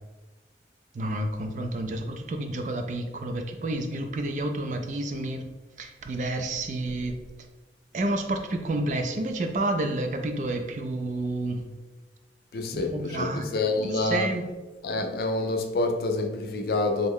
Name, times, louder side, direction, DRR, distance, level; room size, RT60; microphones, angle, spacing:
voice 1, 0.9-5.4 5.8-7.2 7.9-11.6 12.7-13.5 14.0-14.4, right 2 dB, 45° right, 0.3 m, -30 dB
voice 2, 12.5-14.3 14.8-17.1, left 2 dB, 55° left, 0.4 m, -27 dB
3.5 x 2.1 x 3.5 m
head